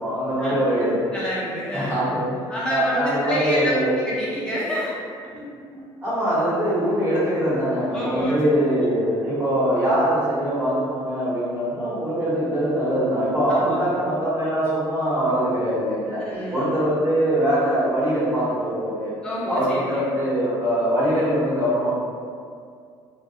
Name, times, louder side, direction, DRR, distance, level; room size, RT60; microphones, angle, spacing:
voice 1, 0.0-1.0 1.7-2.2 2.7-3.9 6.0-16.2 16.5-19.1 19.5-21.9, equal, 25° right, -11 dB, 1.1 m, -22 dB
voice 2, 1.1-2.0 2.5-3.8 4.1-4.9 5.3-5.5 5.7-5.9 7.9-8.3 13.5-13.9 16.1-16.7 19.2-19.8, left 1 dB, 10° left, -9 dB, 0.7 m, -28 dB
2.2 x 2.1 x 2.7 m, 2.2 s
cardioid pair, 125°, 10 cm